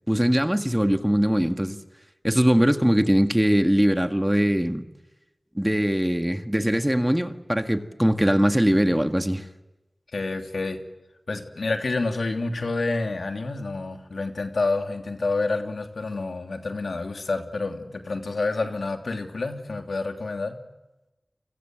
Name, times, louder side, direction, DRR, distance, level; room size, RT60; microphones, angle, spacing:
voice 1, 0.1-1.8 2.2-4.8 5.6-9.4, equal, 10° right, 7 dB, 1.8 m, -21 dB
voice 2, 10.1-10.8 11.3-20.6, left 3 dB, 85° left, 4 dB, 3.0 m, -28 dB
29.5 x 25.0 x 7.9 m, 1.0 s
wide cardioid pair, 55°, 0 cm